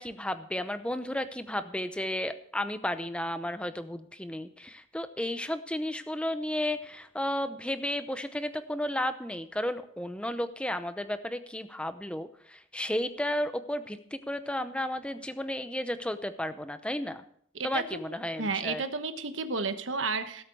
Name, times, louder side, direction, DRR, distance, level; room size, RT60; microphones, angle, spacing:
voice 1, 0.0-17.2 17.6-18.8, left 1 dB, 5° left, 10 dB, 0.7 m, -33 dB
voice 2, 17.5-20.4, right 4 dB, 80° right, 9 dB, 1.2 m, -32 dB
17.5 x 8.1 x 4.6 m, 0.63 s
head